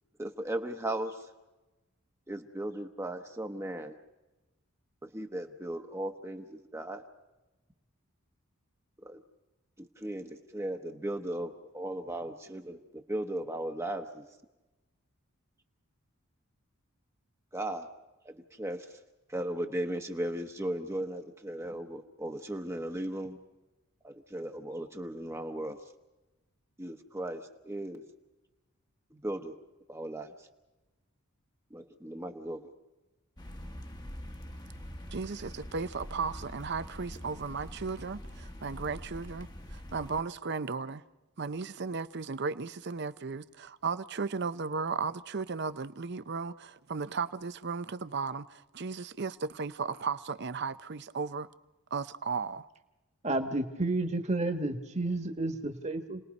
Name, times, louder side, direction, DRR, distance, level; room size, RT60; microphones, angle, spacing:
voice 1, 0.2-1.3 2.3-3.9 5.0-7.0 9.0-9.2 9.8-14.2 17.5-17.9 18.2-19.0 19.3-23.4 24.0-25.8 26.8-28.0 29.1-29.5 29.9-30.5 31.7-32.7, right 1 dB, 15° right, 1.0 m, -37 dB
sound 1, 33.4-40.2, equal, 20° left, 1.1 m, -44 dB
voice 2, 35.1-41.0 41.4-51.5 51.9-52.7, right 4 dB, 50° right, 0.7 m, -35 dB
voice 3, 53.2-56.2, right 2 dB, 30° right, 1.5 m, -31 dB
29.5 x 19.5 x 5.4 m
head